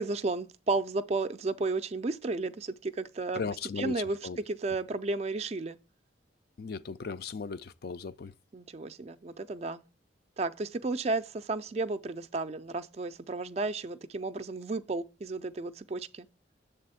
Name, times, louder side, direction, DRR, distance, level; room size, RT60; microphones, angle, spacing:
voice 1, 0.0-3.4 3.8-4.2 4.5-5.8 8.5-9.8 10.4-16.3, right 3 dB, 35° right, 0.4 m, -33 dB
voice 2, 3.3-4.4 6.6-8.3, left 5 dB, 55° left, 0.4 m, -37 dB
7.5 x 3.4 x 5.6 m
head